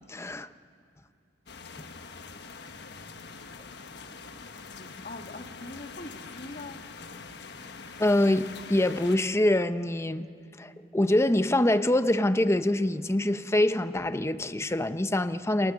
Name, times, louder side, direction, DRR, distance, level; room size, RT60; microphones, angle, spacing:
voice 1, 0.1-0.5 8.0-10.3 10.6-15.7, left 1 dB, 15° left, 0.7 m, -25 dB
sound 1, 1.5-9.2, left 4 dB, 65° left, 1.3 m, -44 dB
voice 2, 4.7-6.8, left 2 dB, 45° left, 1.8 m, -42 dB
29.0 x 21.0 x 6.8 m
head